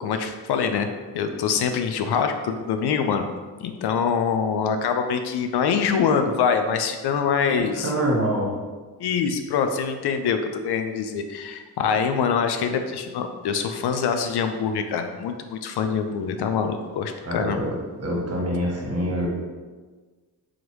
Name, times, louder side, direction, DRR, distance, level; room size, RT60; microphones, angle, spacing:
voice 1, 0.0-3.3 3.6-7.9 9.0-17.6, left 6 dB, 70° left, 7 dB, 0.5 m, -24 dB
voice 2, 7.6-8.5 17.2-17.7 18.0-19.3, right 1 dB, 35° right, -3 dB, 1.4 m, -25 dB
3.9 x 3.0 x 3.1 m, 1.4 s
supercardioid pair, 50°, 41 cm